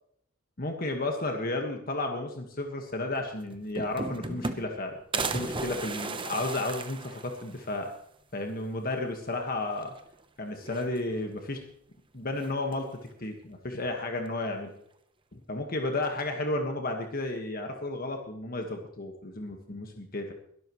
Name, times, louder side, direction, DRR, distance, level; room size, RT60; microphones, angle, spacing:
voice 1, 0.6-7.9 8.3-9.9 10.4-11.6 12.1-12.9 13.2-14.7 15.3-20.3, left 2 dB, 45° left, 3 dB, 1.6 m, -33 dB
sound 1, 3.2-3.3 3.5-4.8 5.1-7.7 8.1-8.2 8.5-8.6 9.8-10.2 10.6-11.3 12.4-12.9, right 3 dB, 25° right, 0.9 m, -35 dB
22.0 x 12.5 x 3.1 m, 0.66 s
head